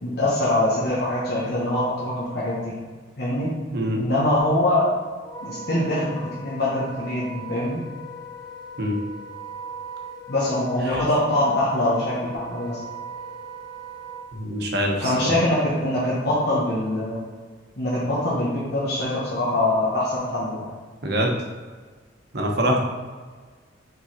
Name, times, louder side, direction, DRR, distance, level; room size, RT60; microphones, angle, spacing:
voice 1, 0.0-2.7 3.2-3.5 4.0-4.9 5.4-7.8 10.3-12.8 15.0-17.2 17.8-20.7 22.6-22.7, left 1 dB, 60° left, -7 dB, 1.2 m, -23 dB
Wind instrument woodwind instrument, 5.2-14.2, right 1 dB, 20° left, 0.6 m, -39 dB
voice 2, 14.3-15.3 21.0-21.3 22.3-22.8, equal, 60° right, 1 dB, 1.0 m, -24 dB
5.7 x 4.0 x 4.2 m, 1.5 s
head